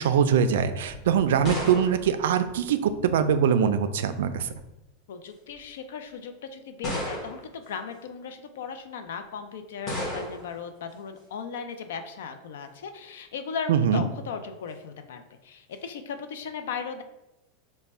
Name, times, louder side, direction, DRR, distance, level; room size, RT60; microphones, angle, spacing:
voice 1, 0.0-4.5 13.7-14.1, right 7 dB, 85° right, 10 dB, 0.3 m, -23 dB
sound 1, 0.8-3.2 4.2-4.7 5.5-5.6 6.8-7.6 9.9-10.6, left 1 dB, 25° left, 1.1 m, -34 dB
voice 2, 5.1-17.0, left 6 dB, 85° left, 8 dB, 0.4 m, -37 dB
3.3 x 2.1 x 4.1 m, 0.94 s
supercardioid pair, 160°, 0 cm